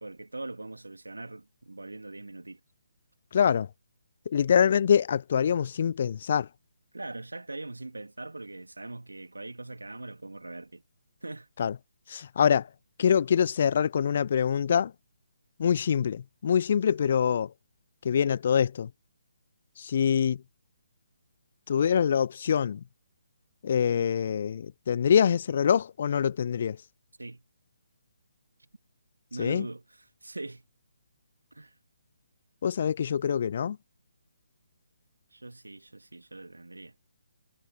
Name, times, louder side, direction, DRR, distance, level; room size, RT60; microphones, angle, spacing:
voice 1, 0.0-2.6 6.9-10.8 11.2-11.5 27.2-27.4 29.3-30.6 31.5-31.8 35.3-37.2, right 2 dB, 75° right, 2.2 m, -41 dB
voice 2, 3.3-3.7 4.3-6.5 11.6-11.7 12.1-12.7 13.0-14.9 15.6-17.5 18.0-18.9 19.8-20.4 21.7-22.8 23.6-26.8 29.4-29.7 32.6-33.8, left 8 dB, 45° left, 0.3 m, -25 dB
figure-of-eight pair, 140°, 0 cm